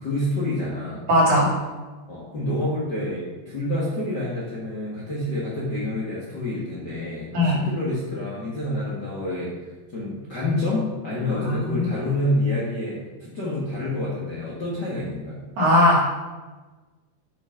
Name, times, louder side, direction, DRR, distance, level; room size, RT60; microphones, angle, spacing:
voice 1, 0.0-1.0 2.1-9.5 9.9-15.4, left 1 dB, 35° left, -6 dB, 1.8 m, -28 dB
voice 2, 1.1-1.5 7.3-7.6 11.4-11.8 15.6-16.0, left 1 dB, 55° right, -4 dB, 4.0 m, -18 dB
10.5 x 6.5 x 5.9 m, 1.3 s
omnidirectional pair, 4.3 m